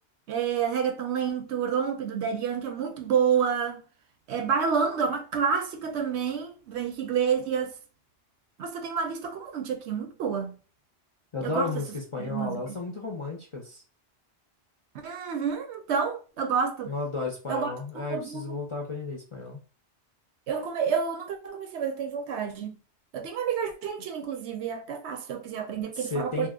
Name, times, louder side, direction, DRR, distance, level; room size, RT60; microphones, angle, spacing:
voice 1, 0.3-3.8 4.3-7.8 8.6-10.5 11.4-11.8 12.2-12.8 14.9-16.9 17.5-18.6 20.5-22.8 23.1-26.5, right 7 dB, 75° right, 0.9 m, -29 dB
voice 2, 11.3-13.8 16.9-19.6 26.0-26.5, left 3 dB, 40° left, 0.4 m, -33 dB
2.8 x 2.1 x 3.6 m
omnidirectional pair, 1.2 m